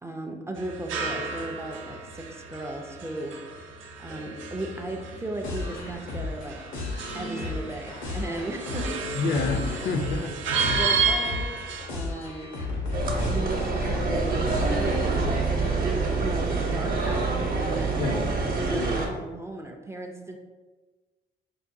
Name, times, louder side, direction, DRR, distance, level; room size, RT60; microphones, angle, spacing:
voice 1, 0.0-3.4 4.0-6.6 7.1-9.2 10.7-11.6 11.9-12.6 13.3-15.9 16.2-18.2 18.7-20.4, right 2 dB, 15° right, 2 dB, 0.3 m, -36 dB
sound 1, 0.6-11.9, right 4 dB, 75° right, 0.5 m, -32 dB
sound 2, 5.4-15.8, left 3 dB, 90° left, 0.8 m, -34 dB
voice 2, 9.2-10.4 10.7-10.8 18.0-18.3 18.7-19.2, left 3 dB, 60° left, 6 dB, 0.4 m, -29 dB
sound 3, 12.9-19.1, right 3 dB, 45° right, 0.8 m, -26 dB
4.7 x 2.2 x 2.6 m, 1.3 s
cardioid pair, 90°, 20 cm